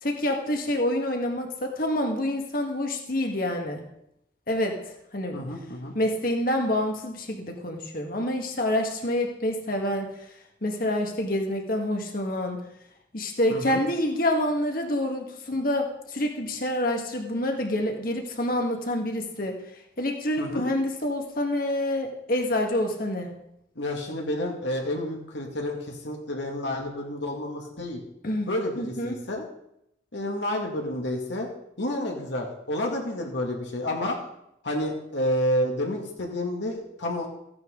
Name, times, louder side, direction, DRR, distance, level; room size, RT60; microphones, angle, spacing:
voice 1, 0.0-3.8 4.5-4.8 5.1-5.4 5.9-10.1 10.6-12.6 13.1-19.6 20.0-23.3 28.2-28.5 28.8-29.1, left 1 dB, 50° left, 2 dB, 1.7 m, -27 dB
voice 2, 5.3-5.9 13.5-13.8 20.4-20.7 23.8-28.0 28.5-29.4 30.1-31.5 31.8-34.2 34.6-37.3, left 1 dB, 70° left, 0 dB, 2.3 m, -30 dB
15.0 x 9.6 x 3.9 m, 0.79 s
head